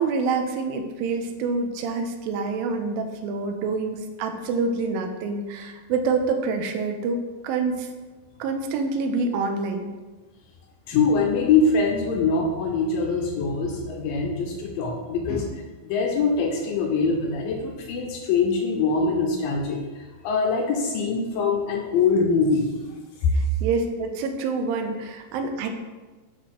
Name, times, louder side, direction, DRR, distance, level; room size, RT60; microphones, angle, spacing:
voice 1, 0.0-7.2 7.4-7.9 8.4-9.9 23.3-25.7, right 4 dB, 80° right, 4 dB, 2.3 m, -27 dB
voice 2, 10.9-15.5 15.8-22.7 23.2-23.3, left 4 dB, 80° left, 1 dB, 2.1 m, -23 dB
8.0 x 3.1 x 5.9 m, 1.3 s
omnidirectional pair, 4.6 m